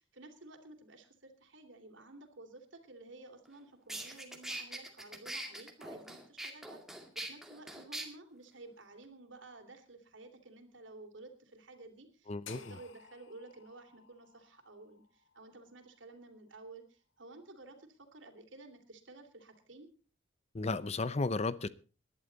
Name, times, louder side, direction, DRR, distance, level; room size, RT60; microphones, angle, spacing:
voice 1, 0.0-6.8 7.1-19.9, right 2 dB, 70° right, 3.0 m, -53 dB
sound 1, 3.5-3.6 3.9-8.1, right 1 dB, ahead, 2.2 m, -42 dB
voice 2, 12.3-12.8 20.5-21.7, left 3 dB, 35° left, 0.6 m, -34 dB
sound 2, 12.5-16.6, left 8 dB, 80° left, 1.5 m, -56 dB
20.5 x 11.5 x 4.0 m
head